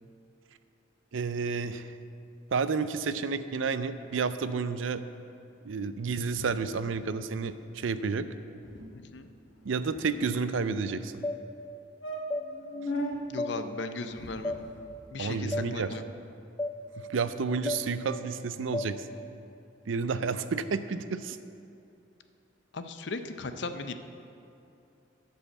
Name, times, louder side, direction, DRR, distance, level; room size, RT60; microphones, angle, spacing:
voice 1, 1.1-1.9 2.5-5.0 5.6-8.3 9.6-11.2 15.2-15.9 17.0-19.0 19.9-21.4, right 5 dB, 85° right, 12 dB, 0.5 m, -30 dB
sound 1, 6.3-7.1 7.4-7.6 7.8-8.1 8.3-8.4 8.6-8.9 9.5-10.6 11.2-11.3 11.7-11.8 12.0-13.2 14.0-15.0, equal, 80° left, 1.4 m, -39 dB
voice 2, 8.9-9.3 13.3-14.6 15.1-16.0 22.7-23.9, left 3 dB, 65° left, 8 dB, 0.6 m, -37 dB
sound 2, 11.2-11.4 12.3-12.5 13.4-13.5 14.4-14.6 15.5-15.7 16.6-16.7 17.7-17.8 18.7-18.9, left 2 dB, 15° left, 0.3 m, -31 dB
12.5 x 5.6 x 7.1 m, 2.6 s
head